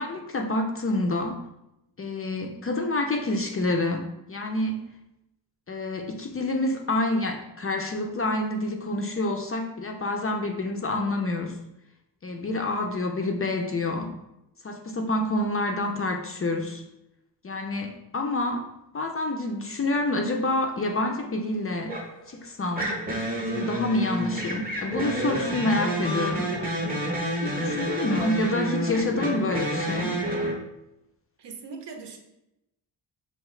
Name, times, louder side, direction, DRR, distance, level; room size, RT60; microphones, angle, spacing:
voice 1, 0.0-1.4 2.0-4.8 5.7-11.6 12.2-14.1 14.6-16.8 17.4-18.7 18.9-21.9 22.3-23.0 23.4-26.5 27.4-30.2, left 2 dB, 35° left, 3 dB, 0.4 m, -28 dB
sound 1, 21.9-22.2 22.8-30.5, equal, 20° right, 0.8 m, -29 dB
voice 2, 31.4-32.2, right 4 dB, 70° right, 4 dB, 0.7 m, -38 dB
4.7 x 2.8 x 3.1 m, 0.88 s
wide cardioid pair, 140°, 45 cm